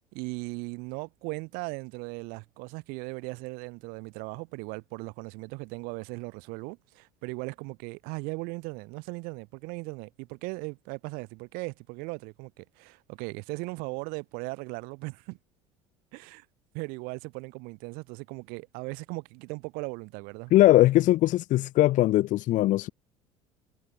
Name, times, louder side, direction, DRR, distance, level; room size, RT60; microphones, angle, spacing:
voice 1, 0.1-15.4 16.1-16.5 16.7-20.5, right 28 dB, 65° right, 4.2 m, -38 dB
voice 2, 20.5-22.9, left 15 dB, 50° left, 0.9 m, -20 dB
hypercardioid pair, 65°, 16 cm